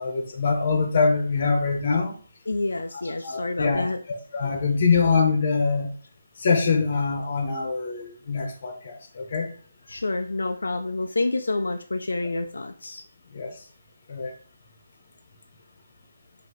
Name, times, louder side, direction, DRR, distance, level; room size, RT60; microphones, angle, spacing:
voice 1, 0.0-2.1 3.2-5.9 6.4-9.5 13.3-13.5 14.1-14.3, left 4 dB, 45° left, 4 dB, 1.1 m, -24 dB
voice 2, 2.5-4.0 9.9-13.0, left 2 dB, 85° left, 5 dB, 0.4 m, -28 dB
5.0 x 2.8 x 3.8 m, 0.42 s
hypercardioid pair, 160°, 0 cm